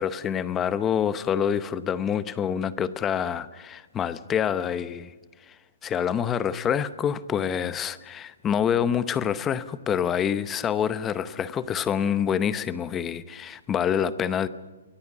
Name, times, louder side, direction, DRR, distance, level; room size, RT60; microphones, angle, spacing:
voice 1, 0.0-5.1 5.5-5.6 5.8-14.5, left 8 dB, 15° left, 16 dB, 0.7 m, -26 dB
23.5 x 17.5 x 7.4 m, 1.3 s
hypercardioid pair, 165°, 0 cm